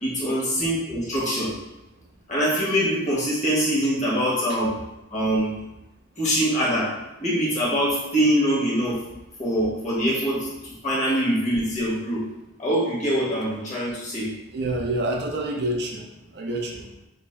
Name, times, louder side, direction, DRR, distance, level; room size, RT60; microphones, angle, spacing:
voice 1, 0.0-1.5 2.3-4.7 5.1-5.6 6.2-6.9 7.2-9.0 9.4-12.2 12.6-14.3, equal, 35° left, -6 dB, 1.1 m, -24 dB
voice 2, 14.5-16.1 16.3-16.8, right 1 dB, 55° right, 1 dB, 0.5 m, -27 dB
3.4 x 2.6 x 3.3 m, 0.95 s
head